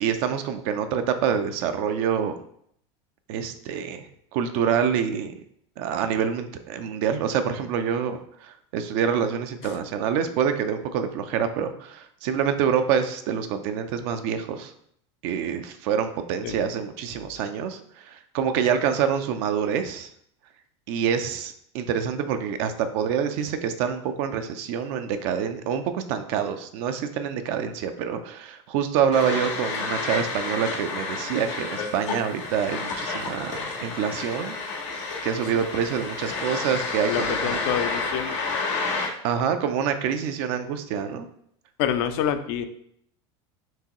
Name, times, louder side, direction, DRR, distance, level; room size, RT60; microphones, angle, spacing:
voice 1, 0.0-2.3 3.3-4.1 4.3-5.3 5.8-14.7 15.2-20.1 20.9-34.6 34.9-37.6 39.2-41.3, right 7 dB, 65° right, 8 dB, 0.5 m, -26 dB
sound 1, 29.1-39.1, left 4 dB, 85° left, 1.7 m, -30 dB
voice 2, 37.0-38.4 41.8-42.7, left 9 dB, 65° left, 9 dB, 0.5 m, -27 dB
4.6 x 2.9 x 2.9 m, 0.68 s
hypercardioid pair, 100°, 15 cm